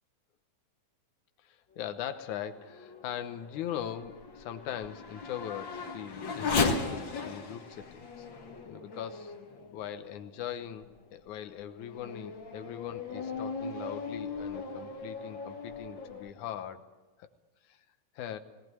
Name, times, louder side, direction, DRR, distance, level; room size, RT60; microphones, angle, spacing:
voice 1, 1.4-8.3 8.7-9.3 9.7-16.9 17.2-17.3 17.6-17.8 18.2-18.4, left 10 dB, 90° left, 9 dB, 2.4 m, -40 dB
Race car auto racing / Accelerating revving vroom, 2.3-10.2 10.8-10.9 11.5-16.3, left 4 dB, 45° left, 2.3 m, -37 dB
19.0 x 18.0 x 9.5 m, 1.2 s
omnidirectional pair, 3.4 m